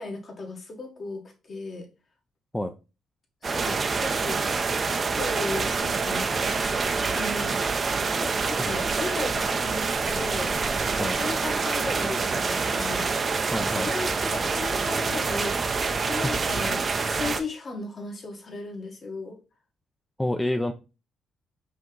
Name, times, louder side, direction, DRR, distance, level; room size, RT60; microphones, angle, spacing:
voice 1, 0.0-1.9 3.4-4.5 4.9-7.6 8.2-13.1 13.6-19.4, left 3 dB, 45° left, 1.4 m, -36 dB
sound 1, 3.4-17.4, right 4 dB, 40° right, 0.5 m, -26 dB
voice 2, 13.5-13.9 16.2-16.3 20.2-20.7, left 1 dB, 10° left, 0.4 m, -27 dB
5.1 x 2.8 x 3.8 m
cardioid pair, 90°, 0 cm